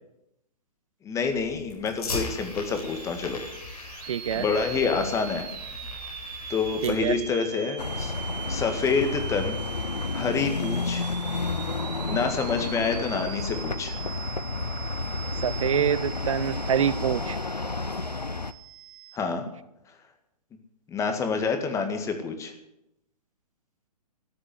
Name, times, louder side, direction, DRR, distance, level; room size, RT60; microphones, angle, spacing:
voice 1, 1.0-3.4 3.8-4.1 4.3-5.5 6.5-8.1 8.5-9.6 10.1-11.1 12.1-14.0 19.1-19.4 20.9-22.5, left 5 dB, 15° left, 7 dB, 2.0 m, -27 dB
Fire, 1.2-7.2, left 3 dB, 70° left, 4.6 m, -38 dB
sound 1, 2.4-19.2, right 11 dB, 35° right, 1.6 m, -41 dB
voice 2, 4.1-4.5 6.8-7.1 15.4-17.4, right 9 dB, 55° right, 17 dB, 0.6 m, -26 dB
sound 2, 7.8-18.5, left 3 dB, 90° left, 0.8 m, -31 dB
14.0 x 9.6 x 9.5 m, 0.83 s
figure-of-eight pair, 120°, 20 cm